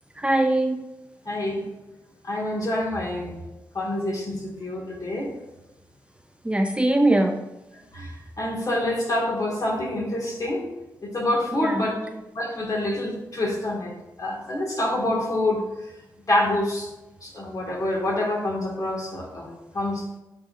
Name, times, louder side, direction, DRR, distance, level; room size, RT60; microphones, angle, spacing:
voice 1, 0.1-0.9 6.4-7.5 11.5-12.2, right 1 dB, 15° right, 5 dB, 0.5 m, -22 dB
voice 2, 1.3-1.7 2.2-3.3 3.7-5.3 7.9-10.7 11.0-12.0 12.3-15.6 16.3-16.9 17.2-19.5 19.7-20.2, left 1 dB, 45° left, -1 dB, 2.1 m, -27 dB
10.5 x 3.9 x 2.6 m, 0.98 s
supercardioid pair, 40°, 8 cm